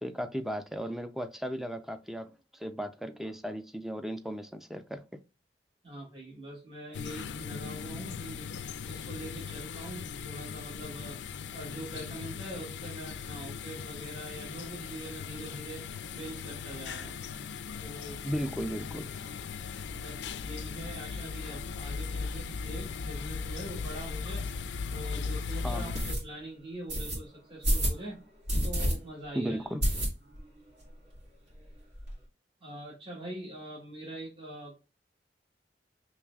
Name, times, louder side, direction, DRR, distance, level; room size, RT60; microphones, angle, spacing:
voice 1, 0.0-5.0 18.2-19.1 25.6-25.9 29.3-29.8, equal, ahead, 9 dB, 0.3 m, -35 dB
voice 2, 5.8-11.2 11.5-15.8 16.1-17.2 17.8-18.2 19.8-24.5 24.9-28.2 28.6-29.7 32.6-34.7, right 1 dB, 30° right, -4 dB, 1.2 m, -43 dB
sound 1, 6.9-26.1, left 5 dB, 85° left, 0.4 m, -38 dB
sound 2, 24.5-24.6 25.1-25.2 25.9-26.2 26.9-27.2 27.6-28.0 28.5-28.9 29.2-29.3 29.8-30.5 30.8-30.9 31.1-31.2 31.5-32.1, equal, 70° right, 2.1 m, -28 dB
4.8 x 3.0 x 2.2 m, 0.30 s
head